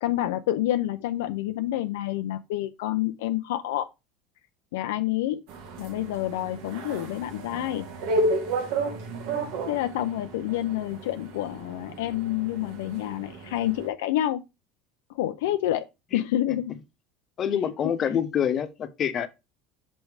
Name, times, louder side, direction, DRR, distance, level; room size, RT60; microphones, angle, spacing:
voice 1, 0.0-3.9 4.7-5.4 5.8-7.9 9.7-14.4 15.1-15.8 16.1-16.8 17.8-17.9, left 13 dB, 85° left, 0.4 m, -28 dB
sound 1, 5.5-13.9, right 2 dB, 75° right, 1.4 m, -32 dB
voice 2, 17.4-19.3, left 8 dB, 40° left, 0.9 m, -26 dB
6.1 x 3.2 x 4.8 m
supercardioid pair, 100°, 0 cm